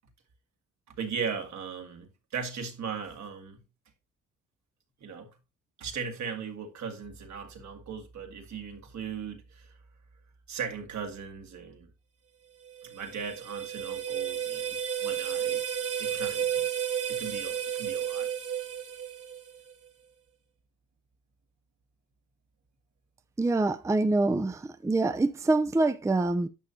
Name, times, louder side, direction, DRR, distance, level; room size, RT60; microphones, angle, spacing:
voice 1, 0.9-3.6 5.0-5.3 5.8-9.7 10.5-11.9 12.8-15.6 16.0-16.7 17.0-18.3, right 6 dB, 65° right, 2.0 m, -38 dB
sound 1, 12.7-19.7, right 9 dB, 50° right, 1.4 m, -32 dB
voice 2, 23.4-26.5, right 2 dB, 10° right, 0.5 m, -25 dB
11.0 x 6.4 x 2.8 m
cardioid pair, 90°, 30 cm